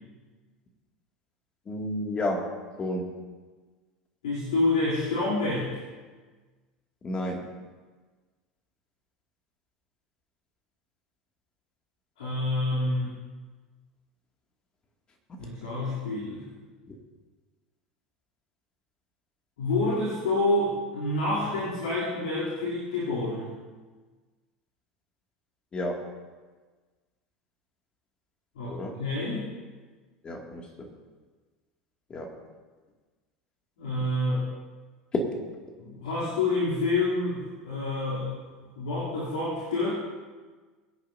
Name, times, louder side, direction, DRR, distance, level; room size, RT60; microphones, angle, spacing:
voice 1, 1.7-2.5 2.8-3.1 7.0-7.5 25.7-26.0 28.7-29.0 30.2-30.9 32.1-32.3, left 1 dB, 25° left, 0 dB, 2.5 m, -31 dB
voice 2, 4.2-5.8 12.2-13.1 15.4-16.4 19.6-23.5 28.5-29.4 33.8-34.4 35.8-38.3 38.8-40.0, left 2 dB, 65° left, -8 dB, 3.3 m, -28 dB
22.5 x 10.5 x 2.8 m, 1.4 s
figure-of-eight pair, 75°, 4 cm